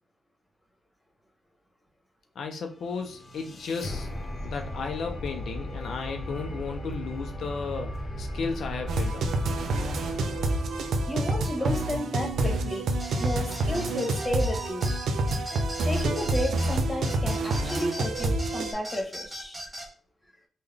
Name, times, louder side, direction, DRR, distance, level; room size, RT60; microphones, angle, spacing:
voice 1, 2.4-4.1 4.4-9.3, left 5 dB, 80° left, 4 dB, 0.4 m, -34 dB
sound 1, 2.8-12.0, equal, 50° left, 0.7 m, -37 dB
sound 2, 8.9-18.7, right 2 dB, 85° right, 0.4 m, -28 dB
voice 2, 11.1-12.9 13.2-14.9 15.8-19.6, left 1 dB, 15° left, 2 dB, 1.1 m, -32 dB
sound 3, 13.0-19.9, right 1 dB, 15° right, 1.0 m, -39 dB
3.7 x 2.2 x 3.3 m, 0.43 s
cardioid pair, 85°, 0 cm